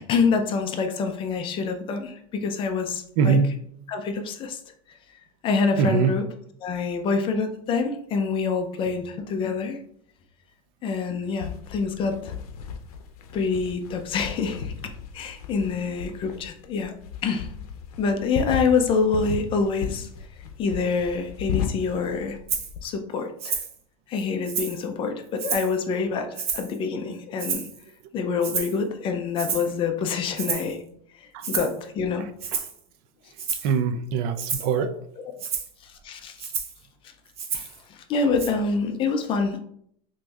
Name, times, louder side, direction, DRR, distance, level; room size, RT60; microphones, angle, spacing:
voice 1, 0.0-3.4 3.9-4.6 5.4-6.3 6.6-9.8 10.8-12.4 13.3-14.7 15.1-16.9 17.2-17.5 18.0-20.1 20.6-22.4 22.8-23.6 24.1-27.7 28.1-30.8 31.2-32.3 34.7-34.9 35.8-36.5 37.5-39.6, left 5 dB, 30° left, 6 dB, 0.4 m, -26 dB
voice 2, 3.2-3.5 5.8-6.1 31.3-31.4 32.5-32.6 33.6-34.9, right 6 dB, 50° right, 10 dB, 0.4 m, -22 dB
sound 1, 11.4-22.8, left 6 dB, 85° left, 0.6 m, -35 dB
Rattle (instrument), 22.5-22.7 23.4-23.8 24.2-24.8 25.4-25.8 26.4-26.8 27.4-27.8 28.4-28.8 29.4-29.7 30.4-30.7 31.4-31.8 32.4-32.8 33.4-33.7 34.4-34.7 35.4-35.7 36.4-36.8 37.4-37.8 38.4-38.5, right 6 dB, 35° right, 0.8 m, -30 dB
6.0 x 2.6 x 2.3 m, 0.69 s
supercardioid pair, 145°, 19 cm